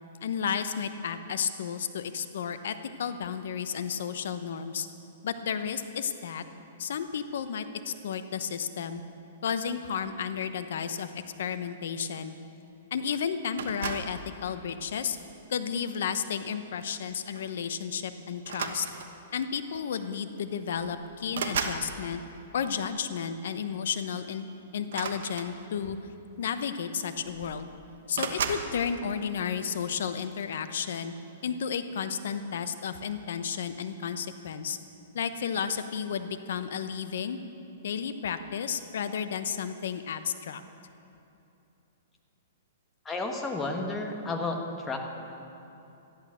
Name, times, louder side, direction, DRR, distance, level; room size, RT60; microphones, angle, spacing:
voice 1, 0.2-4.9 5.2-6.4 6.8-9.0 9.4-11.1 11.4-12.3 12.9-15.2 15.5-18.9 19.3-22.2 22.5-24.5 24.7-26.1 26.4-27.7 28.1-31.1 31.4-34.8 35.1-37.4 37.8-40.6, left 7 dB, 70° left, 10 dB, 0.9 m, -32 dB
sound 1, 13.6-14.2 15.1-15.4 16.9-17.1 17.3-17.5 18.4-19.3 20.3-20.4 20.7-21.9 24.8-25.9 26.8-26.9 27.2-27.7 28.1-28.7, right 6 dB, 70° right, 1.2 m, -34 dB
voice 2, 43.0-45.0, left 3 dB, 10° left, 2 dB, 1.3 m, -32 dB
13.0 x 11.0 x 6.4 m, 2.8 s
hypercardioid pair, 150°, 0 cm